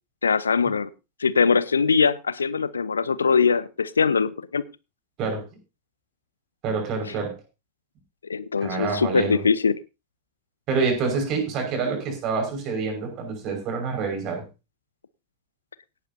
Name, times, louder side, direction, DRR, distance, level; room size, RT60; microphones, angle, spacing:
voice 1, 0.2-0.9 1.2-4.6 8.3-9.8, left 5 dB, 75° left, 0.6 m, -22 dB
voice 2, 6.6-7.4 8.6-9.4 10.7-14.4, right 4 dB, 35° right, 5.4 m, -27 dB
17.0 x 12.0 x 2.8 m
figure-of-eight pair, 90°, 0 cm